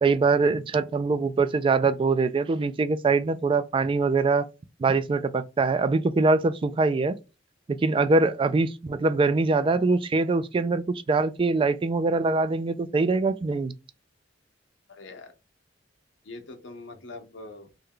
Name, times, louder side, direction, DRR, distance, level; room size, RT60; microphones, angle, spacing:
voice 1, 0.0-4.5 4.8-7.1 7.7-13.7, right 3 dB, 30° right, 0.3 m, -23 dB
voice 2, 14.9-15.3 16.2-17.7, left 2 dB, 70° left, 0.7 m, -43 dB
3.3 x 2.2 x 3.7 m
head